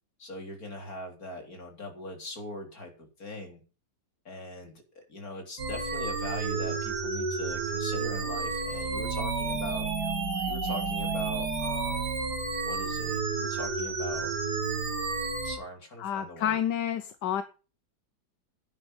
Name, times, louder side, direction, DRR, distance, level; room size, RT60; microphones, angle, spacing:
voice 1, 0.2-3.6 4.3-9.9 10.5-12.1 12.6-14.3 15.4-16.6, left 1 dB, 60° left, 3 dB, 4.1 m, -41 dB
sound 1, 5.6-15.6, right 4 dB, 75° right, 2.9 m, -31 dB
voice 2, 16.0-17.4, left 10 dB, 85° left, 11 dB, 1.5 m, -29 dB
11.0 x 9.9 x 5.5 m, 0.34 s
omnidirectional pair, 1.8 m